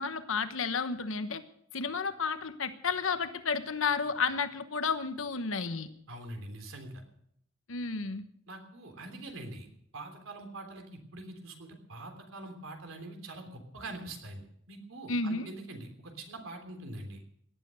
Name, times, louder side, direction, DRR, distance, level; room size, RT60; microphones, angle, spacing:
voice 1, 0.0-1.4 1.7-5.9 7.7-8.2 15.1-15.5, left 4 dB, 75° left, 10 dB, 1.1 m, -32 dB
voice 2, 6.1-6.9 8.5-9.7 9.9-17.2, right 2 dB, 80° right, 5 dB, 3.4 m, -44 dB
18.0 x 12.0 x 6.4 m, 0.70 s
head